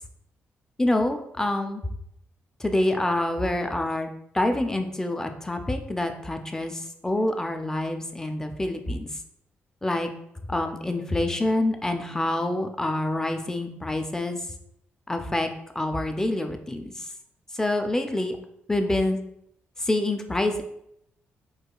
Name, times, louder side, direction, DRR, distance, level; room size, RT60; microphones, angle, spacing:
voice 1, 0.8-1.8 2.6-4.1 4.3-9.1 9.8-10.1 10.5-14.4 15.1-15.5 15.8-16.9 17.6-18.4 18.7-19.2 19.8-20.6, left 1 dB, 15° left, 6 dB, 0.4 m, -26 dB
4.6 x 2.4 x 2.3 m, 0.75 s
cardioid pair, 95°, 4 cm